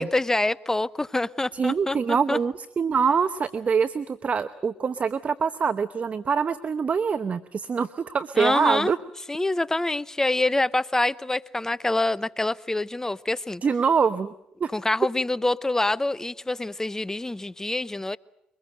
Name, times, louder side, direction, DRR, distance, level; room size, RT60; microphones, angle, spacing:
voice 1, 0.0-2.4 8.4-8.9 9.3-13.6 14.7-18.2, left 2 dB, 15° left, 0.8 m, -26 dB
voice 2, 1.5-9.0 13.6-14.3 14.6-14.7, right 6 dB, 40° right, 0.9 m, -24 dB
24.0 x 20.5 x 7.8 m
hypercardioid pair, 55°, 4 cm